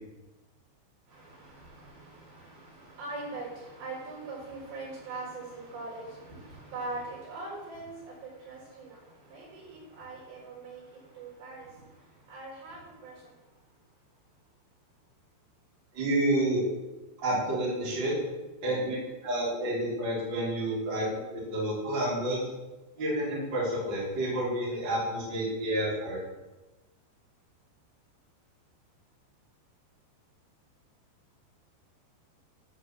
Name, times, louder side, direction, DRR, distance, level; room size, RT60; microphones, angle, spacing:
voice 1, 1.1-11.8 12.3-13.2, right 2 dB, 60° right, -6 dB, 6.9 m, -42 dB
voice 2, 15.9-16.7 17.2-18.2 18.6-19.0 19.2-21.1 21.3-22.4 23.0-26.2, right 1 dB, 25° right, -8 dB, 4.0 m, -29 dB
12.0 x 5.5 x 7.6 m, 1.1 s
omnidirectional pair, 5.5 m